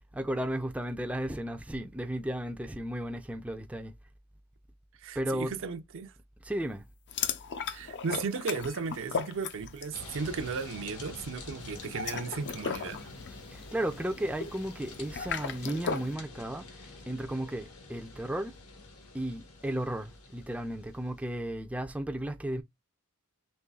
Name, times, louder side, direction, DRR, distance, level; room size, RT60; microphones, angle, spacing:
voice 1, 0.1-3.9 5.2-5.5 6.4-6.8 13.5-16.7 17.1-18.5 19.1-22.6, right 1 dB, 5° right, 0.4 m, -34 dB
voice 2, 5.0-6.1 7.7-13.1, right 5 dB, 60° right, 0.5 m, -35 dB
sound 1, 7.1-10.0 10.3-10.6 11.8-16.1, left 6 dB, 50° left, 0.5 m, -36 dB
sound 2, 9.9-21.4, left 3 dB, 75° left, 1.2 m, -47 dB
5.3 x 3.1 x 2.3 m
head